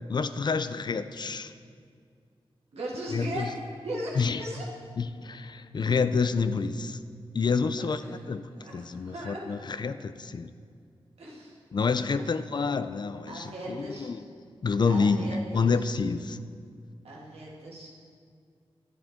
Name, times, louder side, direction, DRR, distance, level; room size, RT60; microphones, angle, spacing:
voice 1, 0.1-1.5 3.1-3.4 4.2-4.4 5.0-7.0 7.3-10.5 11.7-14.2 14.6-16.4, left 4 dB, 50° left, 12 dB, 0.4 m, -28 dB
voice 2, 2.7-3.5 3.8-4.7 7.7-8.2 8.5-9.4 11.2-11.6 13.3-14.1 14.9-16.0 17.0-18.0, right 1 dB, 90° right, -4 dB, 1.8 m, -38 dB
11.0 x 7.3 x 3.6 m, 2.2 s
wide cardioid pair, 75°, 10 cm